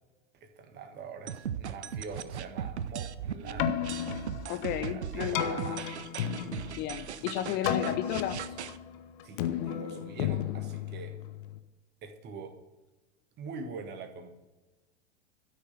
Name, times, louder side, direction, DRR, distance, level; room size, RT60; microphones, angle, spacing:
voice 1, 0.3-3.8 4.8-6.1 7.5-8.3 9.2-11.2 12.0-12.6 13.4-14.3, right 5 dB, 30° right, 7 dB, 1.6 m, -43 dB
sound 1, 1.3-8.8, right 9 dB, 70° right, 0.7 m, -38 dB
Keyboard (musical), 3.4-11.6, left 10 dB, 45° left, 1.0 m, -34 dB
voice 2, 4.5-5.4 6.8-8.4, left 12 dB, 25° left, 10 dB, 0.5 m, -33 dB
13.0 x 6.4 x 7.9 m, 1.1 s
figure-of-eight pair, 90°, 35 cm